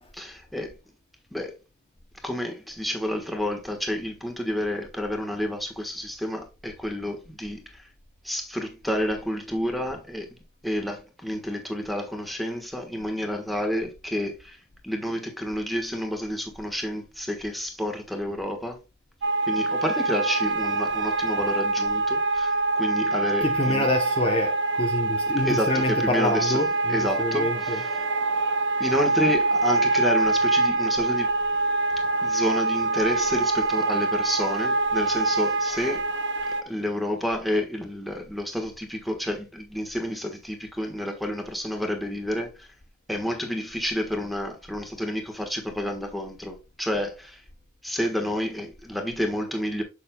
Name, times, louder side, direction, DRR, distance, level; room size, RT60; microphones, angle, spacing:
voice 1, 0.1-0.7 1.3-1.5 2.2-7.8 8.2-10.3 10.6-14.6 14.8-18.8 19.5-23.9 25.3-26.6 26.9-28.0 28.8-31.3 32.2-36.0 36.7-42.7 43.1-47.4 47.8-49.8, left 1 dB, ahead, 1.3 m, -30 dB
sound 1, 19.2-36.6, right 3 dB, 55° right, 0.7 m, -25 dB
voice 2, 23.4-28.3 28.9-29.1, left 2 dB, 25° left, 0.7 m, -27 dB
7.4 x 6.7 x 2.2 m
head